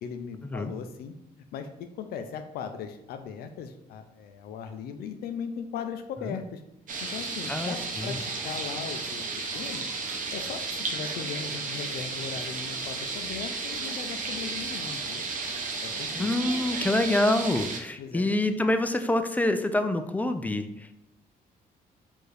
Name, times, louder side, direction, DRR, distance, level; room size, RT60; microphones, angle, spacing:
voice 1, 0.0-1.7 2.0-6.6 7.0-9.9 10.3-15.2 15.8-16.3 18.0-18.3, left 7 dB, 85° left, 7 dB, 0.4 m, -38 dB
sound 1, 6.9-17.8, right 4 dB, 55° right, 0.7 m, -33 dB
voice 2, 7.5-8.2 16.1-20.9, left 1 dB, 10° left, 8 dB, 0.3 m, -26 dB
4.5 x 2.6 x 3.2 m, 0.84 s
cardioid pair, 95°, 16 cm